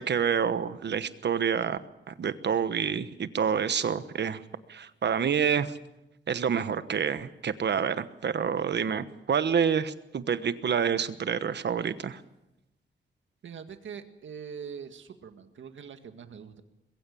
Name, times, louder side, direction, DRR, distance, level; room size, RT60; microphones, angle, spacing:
voice 1, 0.0-1.8 2.1-4.4 4.7-5.8 6.3-12.2, right 7 dB, 60° right, 12 dB, 1.2 m, -28 dB
voice 2, 13.4-16.6, right 7 dB, 80° right, 7 dB, 1.9 m, -43 dB
21.5 x 16.0 x 8.6 m, 0.95 s
wide cardioid pair, 105°, 20 cm